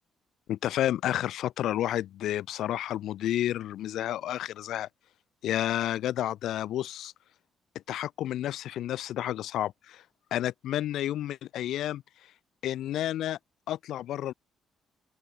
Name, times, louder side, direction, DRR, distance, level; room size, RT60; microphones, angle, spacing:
voice 1, 0.5-4.9 5.4-7.1 7.9-10.0 10.3-12.0 12.6-13.4 13.7-14.3, left 12 dB, 80° left, 0.4 m, -30 dB
open air
cardioid pair, 90°, 0 cm